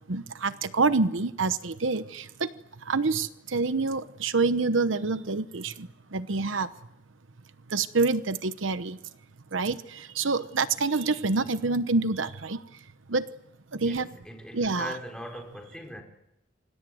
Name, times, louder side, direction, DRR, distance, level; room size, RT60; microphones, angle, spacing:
voice 1, 0.1-2.5 2.9-6.7 7.7-9.0 9.5-9.8 10.2-12.6 13.1-13.3 13.7-14.1 14.5-15.0, right 3 dB, 75° right, 1.0 m, -27 dB
voice 2, 13.7-16.0, equal, 5° left, 4.8 m, -41 dB
29.0 x 26.0 x 7.8 m
head